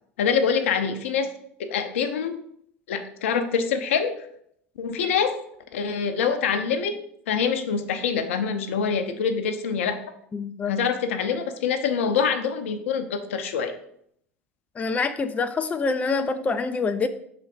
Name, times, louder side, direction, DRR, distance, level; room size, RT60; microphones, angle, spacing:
voice 1, 0.2-1.3 1.6-2.4 2.9-4.2 4.8-5.4 5.7-6.9 7.3-10.0 10.7-13.7, left 6 dB, 70° left, 8 dB, 0.6 m, -25 dB
voice 2, 10.3-10.8 14.8-17.1, left 4 dB, 20° left, 8 dB, 0.4 m, -26 dB
4.8 x 3.9 x 5.0 m, 0.69 s
figure-of-eight pair, 75°, 7 cm